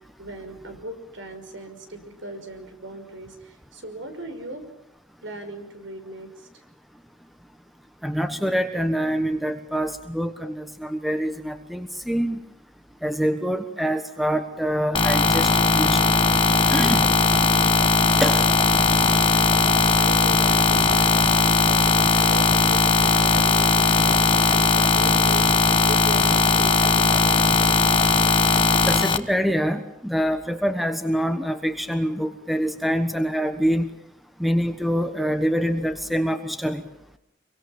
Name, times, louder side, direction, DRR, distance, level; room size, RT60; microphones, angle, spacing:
voice 1, 0.2-4.7 5.2-6.5 19.6-27.4, right 1 dB, 80° right, 7 dB, 5.8 m, -38 dB
voice 2, 8.0-12.4 13.0-16.1 16.7-17.1 18.2-18.5 28.9-33.9 34.4-36.8, equal, ahead, 8 dB, 1.2 m, -25 dB
sound 1, 14.9-29.2, left 4 dB, 25° left, 1.3 m, -18 dB
26.5 x 23.5 x 7.4 m, 0.79 s
head